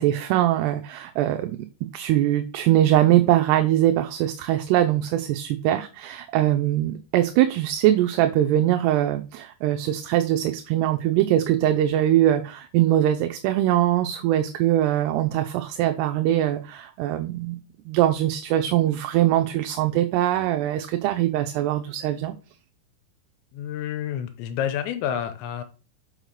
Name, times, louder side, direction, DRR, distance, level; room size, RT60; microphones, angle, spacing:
voice 1, 0.0-1.6 1.9-17.6 17.9-22.3, right 12 dB, 80° right, 7 dB, 2.6 m, -22 dB
voice 2, 23.5-25.6, left 9 dB, 90° left, 8 dB, 3.1 m, -29 dB
6.4 x 5.6 x 6.5 m, 0.34 s
omnidirectional pair, 5.0 m